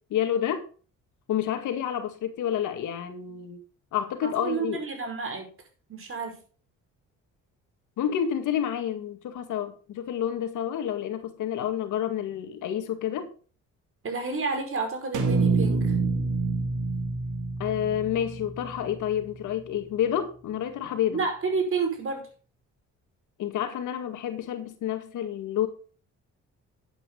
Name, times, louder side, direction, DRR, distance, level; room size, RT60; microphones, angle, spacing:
voice 1, 0.1-0.6 1.3-3.6 3.9-4.8 8.0-13.3 17.6-21.2 23.4-25.7, left 10 dB, 80° left, 2.0 m, -29 dB
voice 2, 4.2-5.5 5.9-6.4 14.0-16.0 21.1-22.3, right 4 dB, 45° right, 5.2 m, -30 dB
sound 1, 15.1-19.4, right 4 dB, 85° right, 2.6 m, -27 dB
11.5 x 8.9 x 3.9 m
cardioid pair, 90°, 30 cm